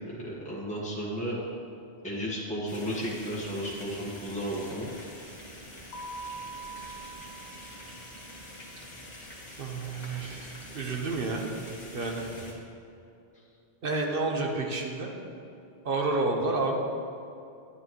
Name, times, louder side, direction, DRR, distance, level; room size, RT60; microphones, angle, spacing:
voice 1, 0.2-1.4 2.0-4.9 12.3-12.4, equal, 5° left, -7 dB, 1.5 m, -33 dB
sound 1, 2.7-12.5, left 1 dB, 45° left, 1.6 m, -46 dB
Keyboard (musical), 5.9-8.5, right 3 dB, 80° left, 1.2 m, -43 dB
voice 2, 9.6-11.5 11.9-12.3 13.8-15.1 15.8-16.7, right 3 dB, 60° right, 1 dB, 1.2 m, -30 dB
10.5 x 9.5 x 3.1 m, 2.7 s
omnidirectional pair, 1.1 m